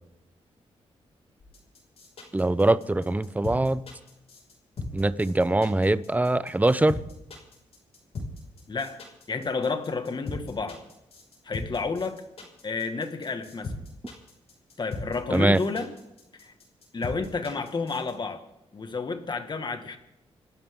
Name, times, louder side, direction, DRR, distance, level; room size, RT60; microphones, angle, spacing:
sound 1, 1.4-18.1, left 3 dB, 65° left, 5.8 m, -38 dB
voice 1, 2.3-3.8 4.9-7.0 15.3-15.6, right 2 dB, 15° right, 15 dB, 0.8 m, -23 dB
voice 2, 8.7-9.0 9.3-10.8 11.4-12.2 12.6-13.7 14.8-15.9 16.4-16.5 16.9-18.4 18.7-20.0, left 4 dB, 40° left, 7 dB, 1.9 m, -30 dB
28.5 x 12.5 x 3.8 m, 0.92 s
cardioid pair, 75°, 11 cm